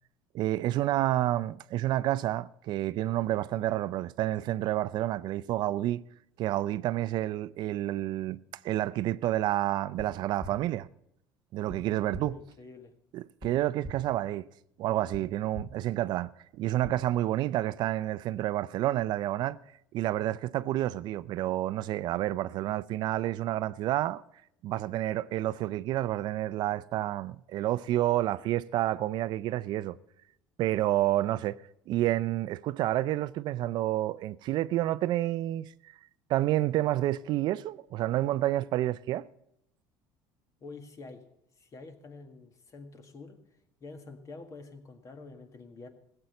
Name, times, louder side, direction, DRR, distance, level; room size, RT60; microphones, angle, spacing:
voice 1, 0.3-6.0 6.4-8.4 8.6-10.9 11.5-12.3 13.1-14.5 14.8-19.6 19.9-24.2 24.6-30.0 30.6-31.6 31.9-35.9 36.3-39.3, right 14 dB, 60° right, 0.4 m, -29 dB
sound 1, 10.4-10.5 11.7-11.8 12.1-12.2 13.4-13.5 13.8-13.9 15.1-15.2 15.5-15.6 16.8-16.9, equal, 20° left, 3.5 m, -40 dB
voice 2, 12.1-12.9 40.6-41.2 41.6-43.4 43.8-45.9, left 3 dB, 40° left, 1.8 m, -47 dB
15.5 x 7.8 x 6.9 m
supercardioid pair, 90°, 8 cm